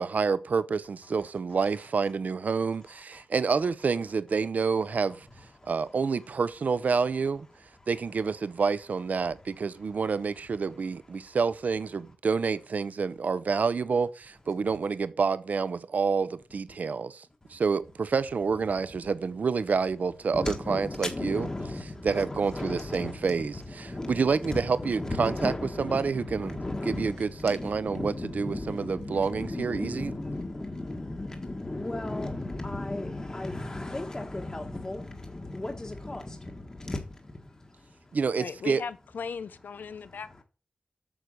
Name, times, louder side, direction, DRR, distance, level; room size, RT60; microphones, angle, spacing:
voice 1, 0.0-5.3 5.7-7.5 7.9-17.3 17.5-21.5 22.0-30.1 38.1-38.8, right 5 dB, 60° right, 0.7 m, -28 dB
voice 2, 20.3-38.0 39.9-40.2, left 2 dB, 20° left, 1.4 m, -35 dB
voice 3, 38.4-40.4, left 6 dB, 85° left, 0.6 m, -37 dB
8.9 x 6.9 x 6.3 m
wide cardioid pair, 120°, 3 cm